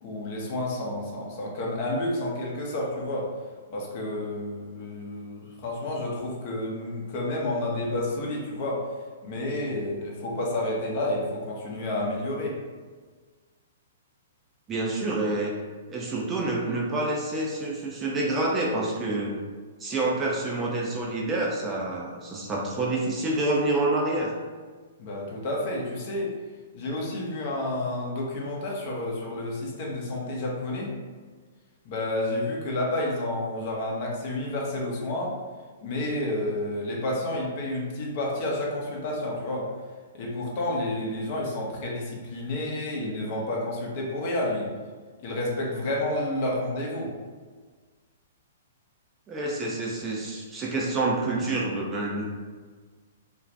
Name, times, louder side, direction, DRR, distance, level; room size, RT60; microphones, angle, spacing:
voice 1, 0.0-3.3 3.7-8.8 9.2-12.5 25.0-26.3 26.7-30.9 31.8-35.3 35.8-39.7 40.1-44.7 45.2-47.1, left 1 dB, 45° left, -3 dB, 0.7 m, -30 dB
voice 2, 14.7-15.5 15.9-19.4 19.8-24.3 49.3-52.2, right 2 dB, 20° right, -3 dB, 0.5 m, -27 dB
2.5 x 2.4 x 3.2 m, 1.5 s
figure-of-eight pair, 115°, 0 cm